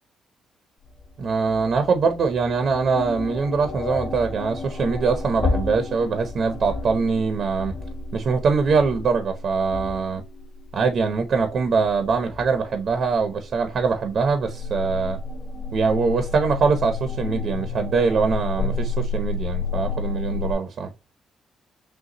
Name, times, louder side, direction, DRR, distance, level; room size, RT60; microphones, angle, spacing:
sound 1, 0.8-20.5, left 3 dB, 45° left, 1.7 m, -31 dB
voice 1, 1.2-7.7 8.1-10.2 10.7-15.2 15.7-20.9, right 5 dB, 55° right, 0.8 m, -23 dB
6.5 x 2.3 x 3.0 m
cardioid pair, 90°, 0 cm